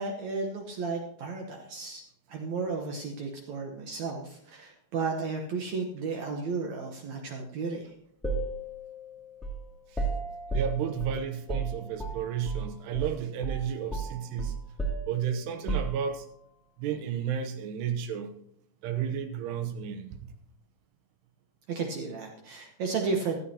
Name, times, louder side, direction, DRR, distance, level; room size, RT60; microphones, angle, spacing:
voice 1, 0.0-2.0 2.3-7.9 21.7-23.4, right 4 dB, 70° right, 1.7 m, -33 dB
sound 1, 8.2-12.7 12.9-13.1 13.4-16.4, right 3 dB, ahead, 0.9 m, -34 dB
voice 2, 10.5-14.6 15.1-16.3 16.8-18.3 18.8-20.3, right 8 dB, 85° right, 3.1 m, -32 dB
15.0 x 12.5 x 2.9 m
omnidirectional pair, 4.7 m